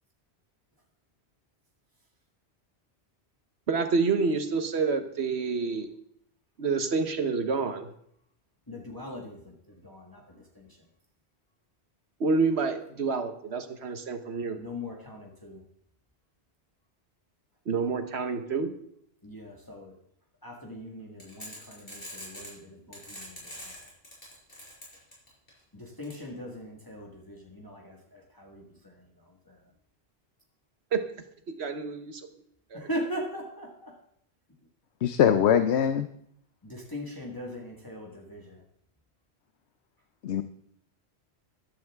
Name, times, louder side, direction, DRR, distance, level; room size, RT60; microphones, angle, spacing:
voice 1, 3.7-5.9 6.6-7.9 12.2-14.6 17.7-18.7 30.9-31.0 31.5-32.2 32.7-32.9, right 4 dB, 75° right, 7 dB, 1.4 m, -28 dB
voice 2, 8.7-10.9 14.6-15.6 19.2-20.0 20.4-23.9 25.7-29.7 32.7-34.0 36.6-38.6, equal, 20° left, -1 dB, 1.7 m, -40 dB
sound 1, 21.2-22.5 22.9-25.5 26.0-26.1, equal, 55° left, 5.6 m, -43 dB
voice 3, 35.0-36.1 40.2-40.4, left 9 dB, 80° left, 10 dB, 0.9 m, -22 dB
14.5 x 11.5 x 3.5 m, 0.71 s
omnidirectional pair, 1.1 m